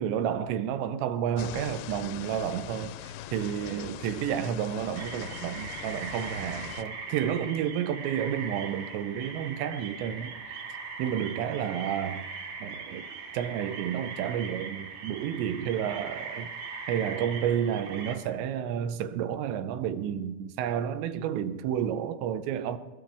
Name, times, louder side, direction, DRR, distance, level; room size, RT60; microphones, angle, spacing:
voice 1, 0.0-10.3 11.0-12.3 12.6-13.1 13.3-16.5 16.9-22.8, right 9 dB, 85° right, 3.1 m, -31 dB
sound 1, 1.4-6.8, left 11 dB, 80° left, 2.3 m, -41 dB
sound 2, 5.0-18.2, right 5 dB, 55° right, 3.0 m, -40 dB
21.0 x 20.0 x 3.5 m
omnidirectional pair, 5.0 m